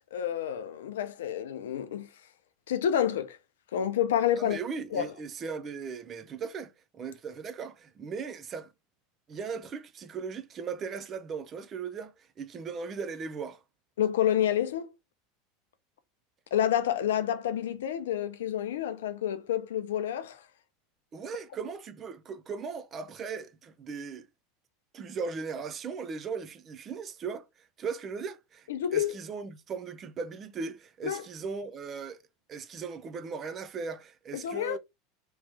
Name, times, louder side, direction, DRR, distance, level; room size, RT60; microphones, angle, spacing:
voice 1, 0.1-2.1 2.7-3.4 3.7-4.6 4.9-5.1 14.0-14.9 16.5-20.4 28.7-29.1 31.0-31.2 34.3-34.8, left 10 dB, 75° left, 0.5 m, -29 dB
voice 2, 4.4-8.7 9.3-13.6 21.1-24.3 24.9-32.2 32.5-34.8, right 5 dB, 35° right, 0.6 m, -38 dB
3.1 x 3.1 x 3.2 m
hypercardioid pair, 80°, 0 cm